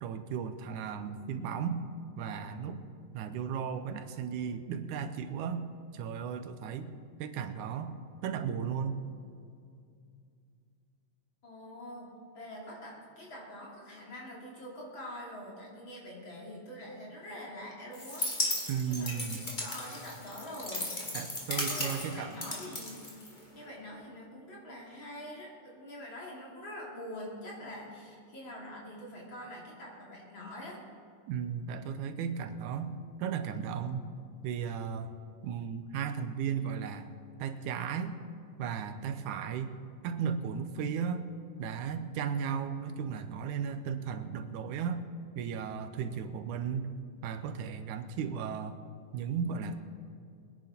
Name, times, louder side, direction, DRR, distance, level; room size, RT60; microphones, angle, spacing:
voice 1, 0.0-1.8 2.2-2.8 3.1-5.7 5.9-6.9 7.2-7.9 8.2-9.1 18.7-19.5 21.1-22.3 31.3-32.9 33.2-34.1 34.4-35.2 35.4-37.1 37.4-38.2 38.6-39.8 40.0-41.2 41.6-45.0 45.4-46.9 47.2-48.8 49.1-49.8, right 7 dB, 80° right, 9 dB, 2.2 m, -35 dB
voice 2, 11.4-12.1 12.3-18.3 18.9-21.2 21.6-22.9 23.5-30.8, left 1 dB, 40° left, -3 dB, 3.6 m, -45 dB
sound 1, 17.9-23.6, left 1 dB, 20° left, 1.7 m, -36 dB
22.5 x 10.5 x 4.3 m, 2.4 s
omnidirectional pair, 3.5 m